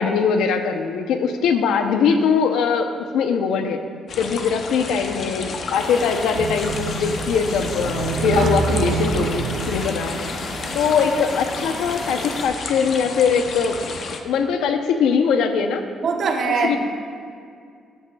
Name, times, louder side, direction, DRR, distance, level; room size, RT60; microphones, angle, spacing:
voice 1, 0.0-3.8 4.2-10.3 10.7-13.8 14.2-15.8 16.6-16.8, left 6 dB, 90° left, 7 dB, 0.7 m, -21 dB
sound 1, 4.1-14.2, left 4 dB, 40° left, 0.6 m, -32 dB
sound 2, 5.7-12.5, left 1 dB, 25° left, 1.1 m, -36 dB
sound 3, 6.3-11.3, right 4 dB, 85° right, 0.6 m, -27 dB
voice 2, 16.0-16.8, right 4 dB, 40° right, 3 dB, 0.9 m, -21 dB
14.0 x 9.3 x 2.3 m, 2.2 s
cardioid pair, 175°, 0 cm